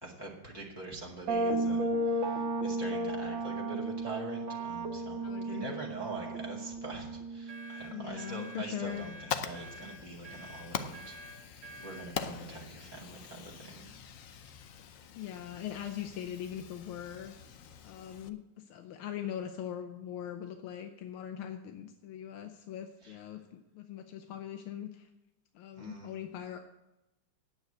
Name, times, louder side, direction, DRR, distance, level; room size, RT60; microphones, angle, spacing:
voice 1, 0.0-13.8 23.0-23.2 25.8-26.1, right 3 dB, 15° left, -3 dB, 1.6 m, -44 dB
sound 1, 1.3-8.9, right 1 dB, 75° right, 1.8 m, -34 dB
voice 2, 5.2-5.7 7.9-9.1 15.1-17.3 17.8-25.1 25.5-26.6, left 10 dB, 90° left, 6 dB, 1.6 m, -41 dB
sound 2, 7.5-12.1, right 1 dB, 45° right, 2.5 m, -49 dB
Fire, 8.8-18.3, left 7 dB, 70° left, 0.7 m, -43 dB
9.2 x 8.3 x 7.8 m, 0.95 s
omnidirectional pair, 2.2 m